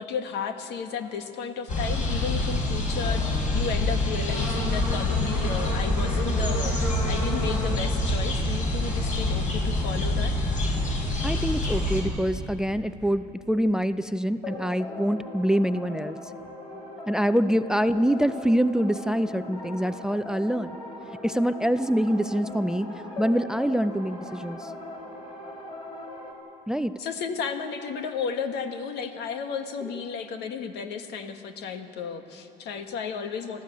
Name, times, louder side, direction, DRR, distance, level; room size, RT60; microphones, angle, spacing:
voice 1, 0.0-10.4 27.0-33.6, left 6 dB, 80° left, 6 dB, 1.6 m, -33 dB
sound 1, 1.7-12.0, left 1 dB, 50° left, 5.2 m, -26 dB
voice 2, 11.2-16.2 17.1-20.7 21.2-22.9 23.2-24.7 26.7-26.9, equal, 5° right, 13 dB, 0.5 m, -25 dB
sound 2, 14.4-26.3, left 1 dB, 30° left, 4.0 m, -39 dB
23.5 x 15.0 x 8.5 m, 2.8 s
cardioid pair, 110°, 17 cm